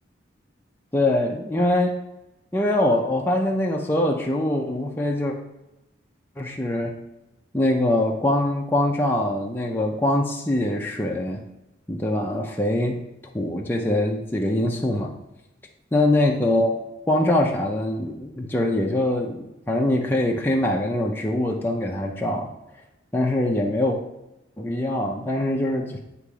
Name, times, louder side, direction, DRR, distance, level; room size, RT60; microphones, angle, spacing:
voice 1, 0.9-2.0 2.5-5.4 6.4-7.0 7.5-11.4 11.9-13.0 13.3-15.1 15.9-16.8 17.1-22.5 23.1-24.0 24.6-25.9, left 1 dB, 10° left, -1 dB, 0.5 m, -23 dB
8.4 x 3.0 x 4.8 m, 0.95 s
head